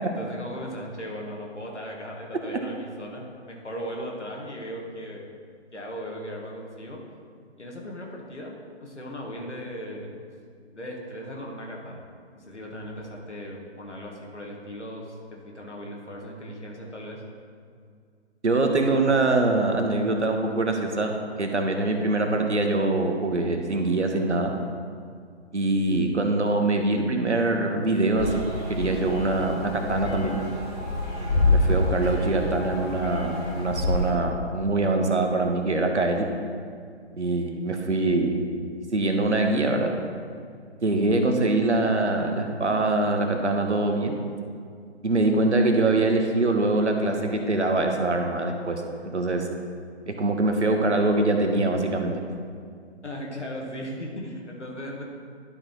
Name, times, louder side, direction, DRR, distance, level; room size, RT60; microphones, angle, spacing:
voice 1, 0.0-5.3 5.7-7.0 7.6-8.5 8.8-10.1 10.7-12.0 12.3-17.2 53.0-55.0, equal, 85° left, -1 dB, 1.9 m, -37 dB
voice 2, 18.4-24.5 25.5-30.4 31.1-36.3 37.2-38.4 38.9-39.9 40.8-44.2 45.0-49.5 50.1-52.2, right 2 dB, 80° right, 4 dB, 1.2 m, -24 dB
sound 1, 28.2-34.1, left 2 dB, 20° left, 1.9 m, -27 dB
11.5 x 4.0 x 4.6 m, 2.2 s
figure-of-eight pair, 145°, 34 cm